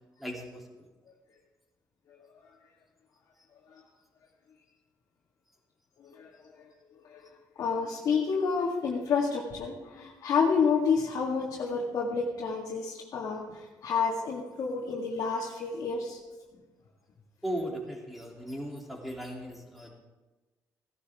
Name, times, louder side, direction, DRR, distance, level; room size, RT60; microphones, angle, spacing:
voice 1, 0.2-0.6 17.4-19.9, equal, ahead, -2 dB, 3.0 m, -37 dB
voice 2, 6.0-6.7 7.1-7.2 7.6-16.2, left 5 dB, 65° left, -4 dB, 2.0 m, -29 dB
16.0 x 12.0 x 3.6 m, 1.2 s
cardioid pair, 95°, 7 cm